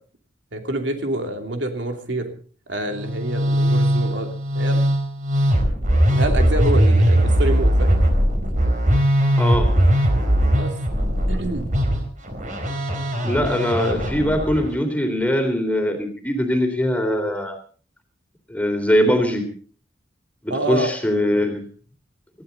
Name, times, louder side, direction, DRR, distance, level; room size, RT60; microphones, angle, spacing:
voice 1, 0.5-2.3 2.7-4.8 6.1-8.0 10.5-10.7 11.3-11.7 20.5-20.9, right 1 dB, 75° right, 5 dB, 2.9 m, -27 dB
Musical instrument, 2.9-14.7, equal, 45° right, 4.1 m, -20 dB
voice 2, 9.4-9.7 13.2-17.6 18.5-19.5 20.4-21.6, equal, 10° left, 5 dB, 3.4 m, -21 dB
21.0 x 15.5 x 4.1 m, 0.40 s
head